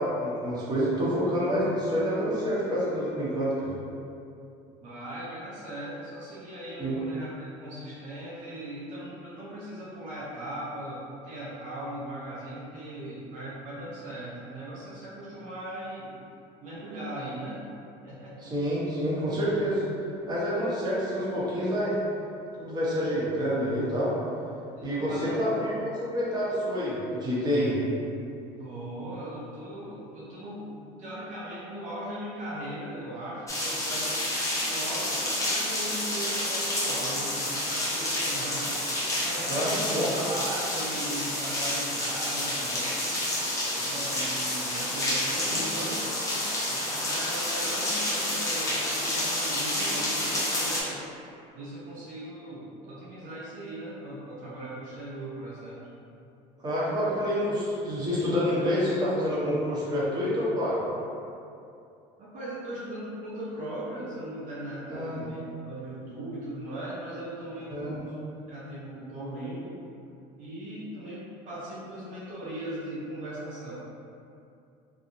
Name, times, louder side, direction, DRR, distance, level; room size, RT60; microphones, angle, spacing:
voice 1, 0.0-3.7 6.8-7.0 18.4-19.8 20.3-21.9 22.6-24.1 24.8-27.8 39.5-40.1 56.6-60.8 64.9-65.2 67.7-68.0, equal, 25° right, -8 dB, 0.9 m, -28 dB
voice 2, 4.8-16.2 16.6-17.6 18.0-18.5 24.8-25.7 28.6-34.1 34.6-43.4 43.8-46.3 46.6-51.0 51.5-55.9 62.2-65.4 65.6-68.2 68.5-69.8 70.4-73.7, right 1 dB, 60° right, -8 dB, 0.7 m, -39 dB
sound 1, 33.5-50.8, left 1 dB, 20° left, 0.7 m, -29 dB
2.8 x 2.2 x 2.6 m, 2.6 s
supercardioid pair, 100°, 16 cm